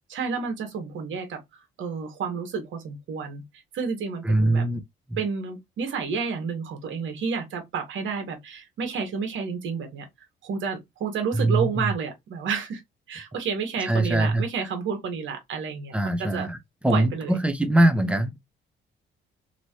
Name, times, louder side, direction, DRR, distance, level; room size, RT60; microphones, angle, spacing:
voice 1, 0.1-1.4 1.8-3.4 3.7-4.6 5.2-10.0 10.4-12.8 13.1-16.5 16.9-17.4, right 6 dB, 75° right, 1.4 m, -30 dB
voice 2, 4.2-4.8 5.1-5.2 11.3-11.9 13.9-14.4 15.9-16.6 16.8-18.4, right 1 dB, 5° right, 0.6 m, -22 dB
3.0 x 3.0 x 2.8 m
cardioid pair, 90°, 20 cm